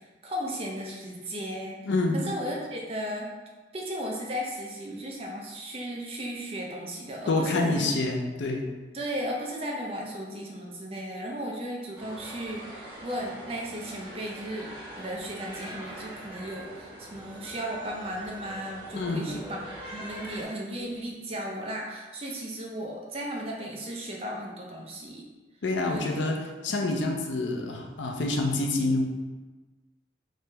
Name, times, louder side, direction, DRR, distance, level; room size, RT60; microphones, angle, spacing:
voice 1, 0.2-1.8 2.1-3.3 3.7-7.9 8.9-25.3 25.8-26.3 26.7-26.8 27.6-27.7, equal, 30° right, -1 dB, 0.5 m, -35 dB
voice 2, 1.8-2.2 7.3-8.7 18.9-19.3 25.6-29.0, left 2 dB, 85° left, 2 dB, 0.5 m, -27 dB
sound 1, 11.9-20.4, right 1 dB, 10° right, 1.4 m, -43 dB
3.2 x 2.8 x 3.3 m, 1.2 s
head